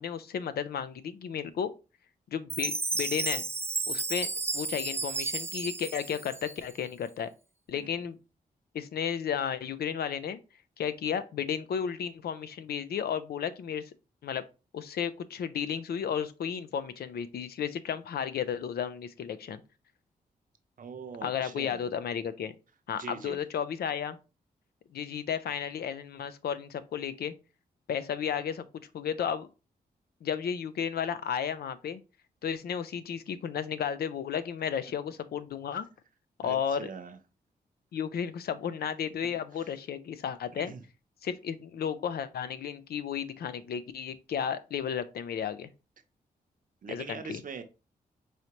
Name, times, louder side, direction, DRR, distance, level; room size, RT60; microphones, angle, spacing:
voice 1, 0.0-1.7 2.3-3.4 3.9-4.3 4.5-7.3 7.7-8.2 8.7-10.4 10.8-13.8 14.2-14.4 14.7-19.6 21.2-22.5 22.9-24.2 24.9-27.3 27.9-28.7 28.9-29.5 30.2-32.0 32.4-35.9 36.4-36.9 37.9-40.7 41.2-45.7 46.9-47.4, left 8 dB, 75° left, 0.5 m, -33 dB
Chime, 2.5-6.9, right 3 dB, 15° right, 0.3 m, -33 dB
voice 2, 20.8-21.9 23.0-23.4 36.4-37.2 40.5-40.8 46.8-47.6, right 5 dB, 55° right, 0.7 m, -42 dB
4.8 x 2.8 x 3.0 m
cardioid pair, 65°, 16 cm